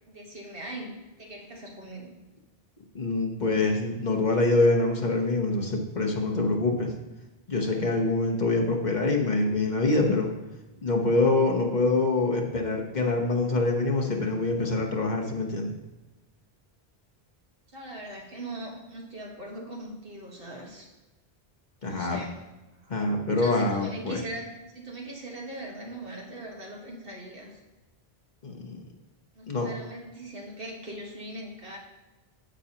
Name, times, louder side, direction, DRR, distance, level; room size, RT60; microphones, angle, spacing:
voice 1, 0.1-0.9 1.2-2.1 17.7-20.9 21.8-22.3 22.8-22.9 23.4-27.6 29.3-31.8, right 1 dB, 65° right, -1 dB, 1.7 m, -40 dB
voice 2, 2.9-7.0 7.5-10.3 10.8-15.7 21.8-22.2 22.9-24.2 28.4-28.8 29.5-29.7, left 2 dB, 50° left, 1 dB, 1.1 m, -25 dB
10.0 x 8.4 x 2.9 m, 1.1 s
omnidirectional pair, 1.0 m